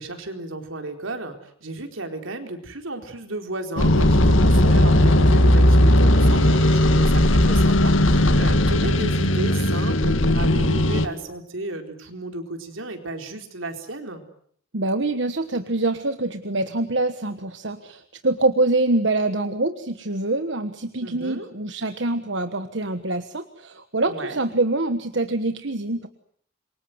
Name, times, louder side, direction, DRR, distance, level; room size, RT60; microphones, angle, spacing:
voice 1, 0.0-14.2 21.0-21.5 24.1-24.4, right 2 dB, 85° right, 5 dB, 4.3 m, -33 dB
sound 1, 3.8-11.1, left 1 dB, 80° left, 2.1 m, -17 dB
voice 2, 14.7-26.1, right 2 dB, 65° right, 9 dB, 1.4 m, -25 dB
27.5 x 24.0 x 8.0 m, 0.63 s
head